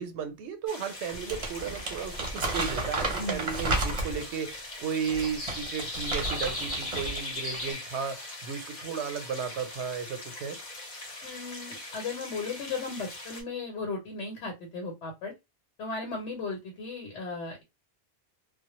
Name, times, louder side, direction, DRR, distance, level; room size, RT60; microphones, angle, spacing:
voice 1, 0.0-10.6, right 6 dB, 85° right, 0.9 m, -34 dB
sound 1, 0.7-13.4, left 2 dB, 45° left, 0.8 m, -40 dB
Crumpling crinkling, 1.1-4.3 4.9-7.2 7.5-7.7, right 2 dB, 35° right, 0.7 m, -32 dB
voice 2, 11.2-15.3 15.8-17.6, left 3 dB, 90° left, 1.0 m, -36 dB
2.1 x 2.0 x 2.9 m
omnidirectional pair, 1.1 m